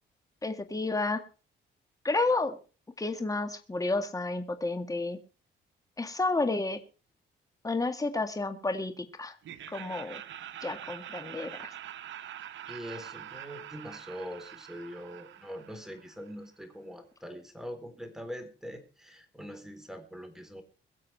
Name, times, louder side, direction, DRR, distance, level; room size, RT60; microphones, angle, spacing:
voice 1, 0.4-1.2 2.0-2.6 3.0-5.2 6.0-6.8 7.6-9.4 9.7-10.2 10.6-11.7, left 3 dB, 15° left, 8 dB, 1.9 m, -31 dB
Laughter, 9.4-16.4, right 11 dB, 70° right, 1.1 m, -45 dB
voice 2, 12.7-20.6, equal, ahead, 7 dB, 3.8 m, -43 dB
22.5 x 7.6 x 4.6 m, 0.36 s
cardioid pair, 90°, 20 cm